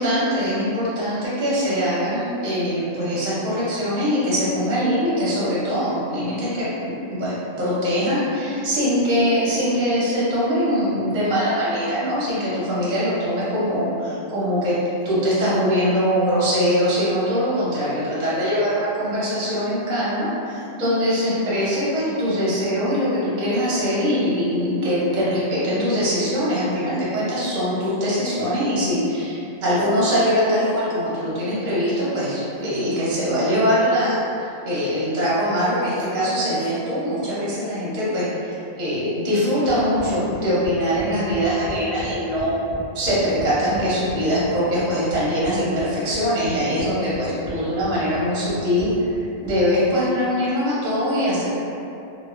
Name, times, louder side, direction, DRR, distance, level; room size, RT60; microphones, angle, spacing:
voice 1, 0.0-14.8 15.0-42.5 42.9-51.5, equal, 45° right, -9 dB, 0.6 m, -22 dB
sound 1, 39.7-42.1 42.4-44.2 44.4-45.5 45.8-46.9 47.1-47.5 47.8-49.5, right 1 dB, 15° left, 0.4 m, -37 dB
2.8 x 2.1 x 2.4 m, 2.7 s
omnidirectional pair, 1.4 m